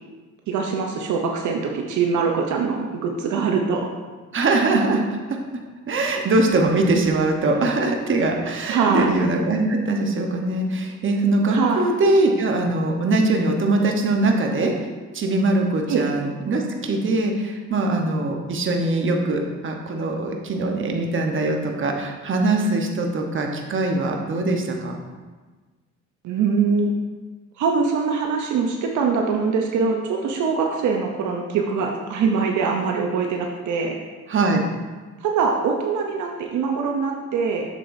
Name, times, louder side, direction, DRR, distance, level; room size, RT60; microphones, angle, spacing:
voice 1, 0.5-3.9 8.7-9.1 11.5-11.8 15.9-16.1 26.2-26.9 27.6-34.0 35.2-37.6, right 5 dB, 75° right, 2 dB, 0.8 m, -23 dB
voice 2, 4.3-5.0 5.3-5.4 5.9-14.7 15.1-25.0 34.3-34.6, right 2 dB, 40° right, 2 dB, 1.0 m, -22 dB
7.2 x 6.8 x 2.7 m, 1.3 s
cardioid pair, 90°, 30 cm